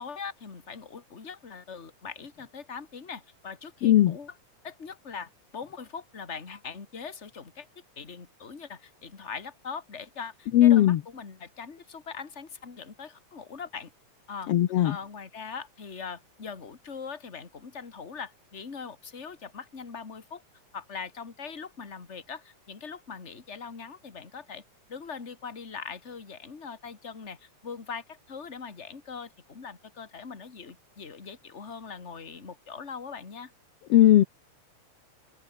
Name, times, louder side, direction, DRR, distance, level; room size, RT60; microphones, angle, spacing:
voice 1, 0.0-4.3 4.6-7.7 8.0-13.9 14.3-14.5 14.8-20.4 20.7-24.6 24.9-33.5, left 5 dB, 25° left, 2.4 m, -41 dB
voice 2, 3.8-4.2 10.5-11.0 14.5-15.0 33.9-34.2, left 12 dB, 65° left, 1.9 m, -18 dB
omnidirectional pair, 3.3 m